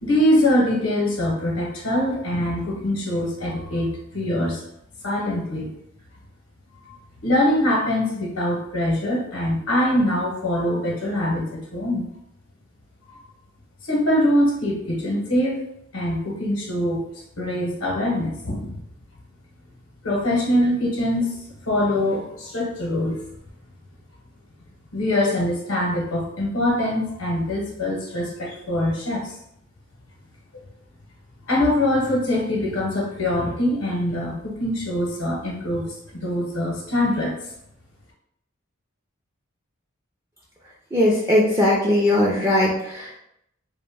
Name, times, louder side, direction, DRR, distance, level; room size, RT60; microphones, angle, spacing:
voice 1, 0.0-4.6 5.0-5.7 6.7-6.9 7.2-12.1 13.1-13.2 13.8-15.6 15.9-17.0 17.4-18.8 20.0-21.3 21.7-23.2 24.9-29.3 31.4-35.9 36.1-37.3, left 1 dB, 90° left, -2 dB, 0.7 m, -23 dB
voice 2, 40.9-43.2, left 1 dB, 15° right, -6 dB, 0.4 m, -19 dB
2.5 x 2.1 x 3.3 m, 0.77 s
head